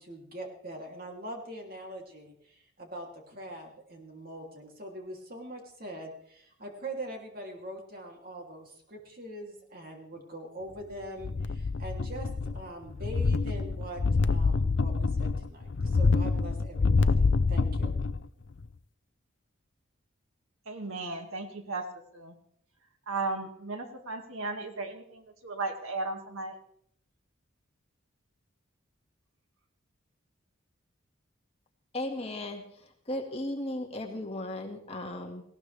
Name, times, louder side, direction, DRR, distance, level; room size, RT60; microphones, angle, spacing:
voice 1, 0.0-17.9, right 1 dB, 45° right, 1 dB, 3.0 m, -43 dB
sound 1, 11.2-12.7 12.9-18.3 18.6-18.7, left 4 dB, 60° left, 0.5 m, -26 dB
voice 2, 20.7-21.9 22.1-22.3 23.1-26.5, right 3 dB, 85° right, 5 dB, 2.1 m, -35 dB
voice 3, 31.9-32.6 33.1-35.4, left 1 dB, 30° left, 2 dB, 2.0 m, -35 dB
18.5 x 17.0 x 3.4 m, 0.67 s
head